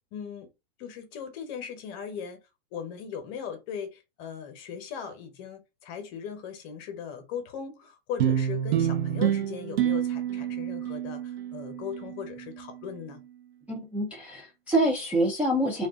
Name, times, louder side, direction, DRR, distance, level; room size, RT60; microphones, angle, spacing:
voice 1, 0.1-0.5 0.8-2.4 2.7-13.2, left 7 dB, 40° left, 0.9 m, -38 dB
sound 1, 8.2-12.8, right 10 dB, 85° right, 0.6 m, -28 dB
voice 2, 13.7-15.9, right 1 dB, 5° right, 0.3 m, -26 dB
2.4 x 2.4 x 3.5 m
supercardioid pair, 145°, 30 cm